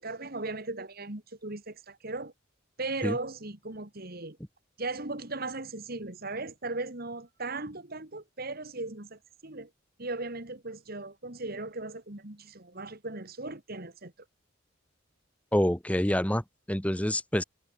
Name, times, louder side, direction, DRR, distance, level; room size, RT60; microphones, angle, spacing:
voice 1, 0.0-2.3 2.8-4.4 4.8-9.7 10.0-14.1, right 2 dB, 50° right, 2.8 m, -37 dB
voice 2, 15.5-17.4, equal, 5° left, 1.4 m, -27 dB
head